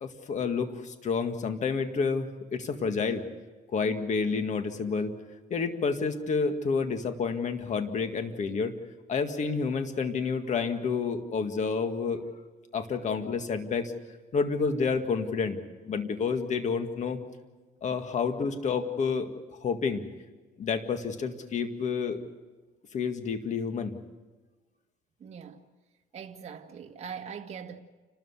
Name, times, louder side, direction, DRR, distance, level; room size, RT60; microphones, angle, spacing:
voice 1, 0.0-3.2 3.7-5.1 5.5-8.7 9.1-12.2 12.7-13.9 14.3-15.6 15.9-17.2 17.8-19.3 19.6-20.0 20.6-22.2 22.9-24.0, left 5 dB, 45° left, 1.9 m, -29 dB
voice 2, 25.2-25.6 26.1-27.8, right 7 dB, 40° right, 1.8 m, -41 dB
29.5 x 13.0 x 8.3 m
cardioid pair, 110°, 17 cm